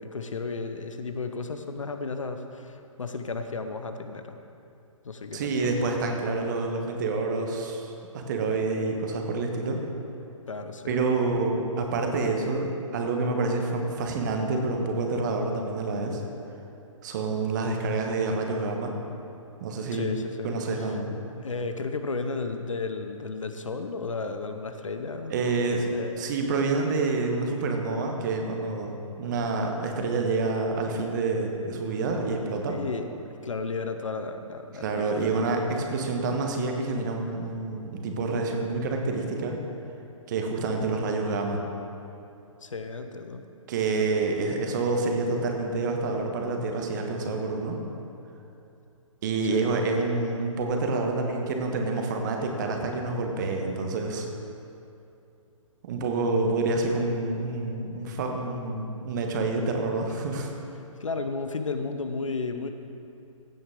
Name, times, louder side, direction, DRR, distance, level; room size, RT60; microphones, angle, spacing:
voice 1, 0.0-4.4 5.0-5.8 10.5-11.1 19.9-21.0 21.4-25.3 25.9-26.3 32.7-35.3 42.6-43.4 49.5-49.7 60.1-60.3 61.0-62.7, left 4 dB, 65° left, 7 dB, 0.8 m, -34 dB
voice 2, 5.3-9.8 10.9-16.2 17.0-18.9 19.6-20.2 20.4-21.1 25.3-25.9 26.2-28.9 29.2-32.8 34.8-39.6 40.3-41.7 43.7-47.8 49.2-54.3 55.8-60.5, right 3 dB, 35° right, 3 dB, 1.3 m, -28 dB
16.0 x 8.6 x 3.7 m, 2.7 s
figure-of-eight pair, 130°, 18 cm